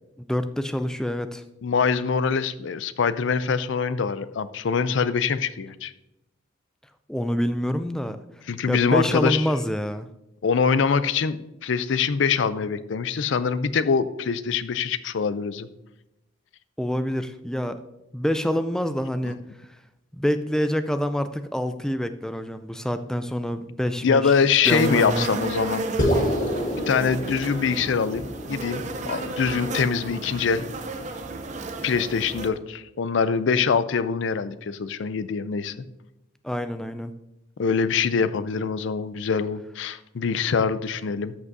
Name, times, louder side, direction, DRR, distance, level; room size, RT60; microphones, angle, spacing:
voice 1, 0.2-1.4 7.1-8.2 8.7-10.1 16.8-17.8 18.1-19.4 20.1-24.3 24.7-25.3 36.4-37.1, equal, 5° left, 10 dB, 0.3 m, -26 dB
voice 2, 1.6-5.9 8.5-9.4 10.4-15.7 24.0-25.8 26.9-30.6 31.8-35.7 37.6-41.4, left 6 dB, 70° left, 14 dB, 0.4 m, -24 dB
sound 1, 24.6-32.5, right 3 dB, 35° right, 0.6 m, -33 dB
sound 2, 26.0-30.4, equal, 40° left, 1.3 m, -28 dB
13.0 x 6.0 x 2.7 m, 0.92 s
head